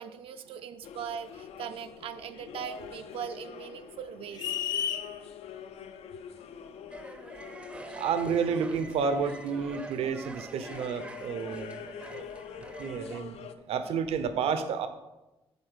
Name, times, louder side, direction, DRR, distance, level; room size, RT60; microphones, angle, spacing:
voice 1, 0.0-4.5 12.0-12.9, right 8 dB, 60° right, 9 dB, 0.4 m, -41 dB
sound 1, 0.8-13.5, left 8 dB, 90° left, 0.5 m, -45 dB
sound 2, 4.4-5.1, left 9 dB, 40° left, 0.7 m, -31 dB
sound 3, 6.9-13.2, right 2 dB, 10° right, 0.5 m, -46 dB
voice 2, 7.9-11.8 12.1-12.3 12.8-13.4 13.7-14.9, right 6 dB, 80° right, 10 dB, 0.8 m, -30 dB
8.6 x 4.0 x 6.2 m, 0.97 s
cardioid pair, 175°, 10 cm